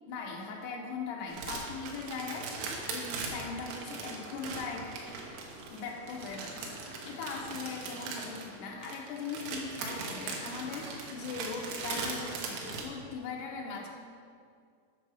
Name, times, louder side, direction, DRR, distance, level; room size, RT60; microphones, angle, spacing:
voice 1, 0.1-2.5 2.9-4.9 5.7-13.9, left 5 dB, 85° left, -1 dB, 2.3 m, -39 dB
sound 1, 1.3-12.8, right 4 dB, 80° right, 3.7 m, -40 dB
Water, 3.1-8.5, right 1 dB, 50° right, 1.9 m, -52 dB
10.0 x 4.9 x 6.3 m, 2.3 s
omnidirectional pair, 5.8 m